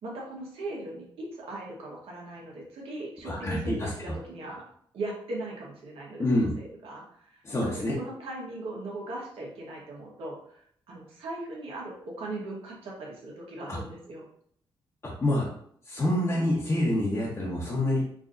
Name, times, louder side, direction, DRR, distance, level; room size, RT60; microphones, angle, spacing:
voice 1, 0.0-4.6 4.9-10.6 10.9-14.2, right 2 dB, 80° right, -3 dB, 1.3 m, -39 dB
voice 2, 3.2-3.9 6.2-6.5 7.4-7.9 13.7-13.8 15.2-15.5 15.9-18.0, left 1 dB, 30° left, -6 dB, 1.0 m, -26 dB
4.8 x 2.7 x 2.6 m, 0.64 s
cardioid pair, 85°, 10 cm